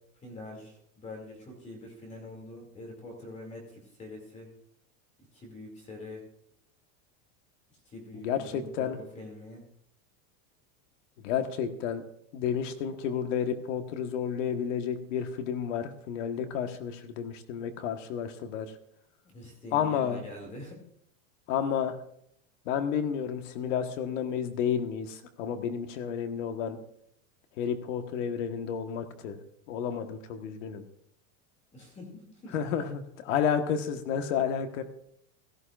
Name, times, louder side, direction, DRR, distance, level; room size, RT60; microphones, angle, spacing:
voice 1, 0.2-4.5 5.3-6.2 7.7-9.7 19.2-20.8 31.7-32.6, left 2 dB, 15° left, 1 dB, 2.6 m, -45 dB
voice 2, 8.2-9.0 11.2-12.0 12.3-18.7 19.7-20.2 21.5-22.0 22.6-26.8 27.6-29.4 29.7-30.8 32.5-34.8, left 8 dB, 60° left, 7 dB, 1.5 m, -31 dB
16.5 x 14.0 x 2.5 m, 0.73 s
supercardioid pair, 175°, 42 cm